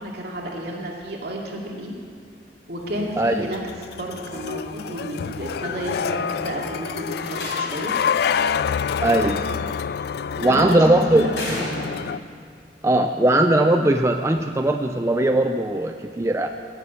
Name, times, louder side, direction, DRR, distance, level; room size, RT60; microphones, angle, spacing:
voice 1, 0.0-1.9 2.7-3.6 4.0-7.9 10.4-11.9, right 1 dB, 60° right, -2 dB, 2.4 m, -31 dB
sound 1, 2.9-12.2, left 7 dB, 60° left, 0.3 m, -27 dB
voice 2, 3.2-3.5 9.0-9.4 10.4-11.3 12.8-16.5, right 1 dB, 15° right, 5 dB, 0.4 m, -19 dB
Slam, 7.0-8.0 9.5-10.0 11.3-12.3, left 1 dB, 80° left, 4.7 m, -33 dB
17.5 x 7.4 x 8.2 m, 2.2 s
head